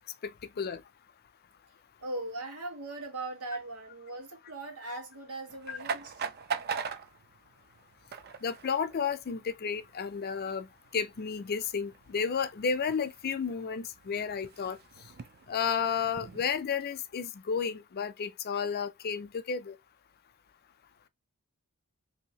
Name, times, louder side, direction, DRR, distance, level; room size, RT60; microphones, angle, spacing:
voice 1, 2.0-6.3, right 2 dB, 90° right, 1.3 m, -39 dB
sound 1, 5.5-16.6, right 6 dB, 45° right, 0.4 m, -42 dB
voice 2, 8.4-10.7 10.9-14.8 15.5-19.8, left 6 dB, 45° left, 0.4 m, -32 dB
3.4 x 2.8 x 2.9 m
head